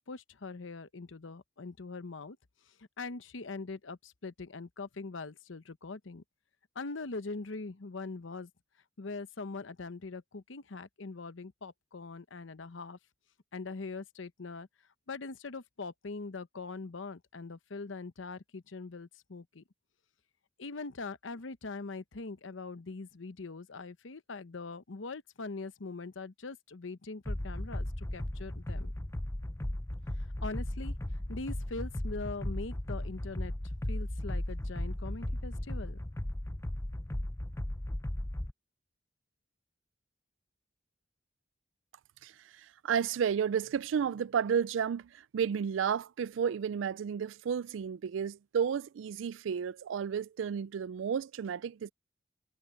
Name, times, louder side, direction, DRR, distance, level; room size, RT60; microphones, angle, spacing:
voice 1, 0.0-2.4 2.7-6.2 6.7-8.5 9.0-13.0 13.5-14.7 15.1-19.6 20.6-28.9 30.2-30.9 31.3-33.5 33.9-36.0, left 3 dB, 85° left, 0.8 m, -42 dB
sound 1, 27.3-38.5, left 1 dB, 15° left, 0.6 m, -36 dB
voice 2, 42.2-51.9, right 7 dB, 80° right, 0.3 m, -32 dB
head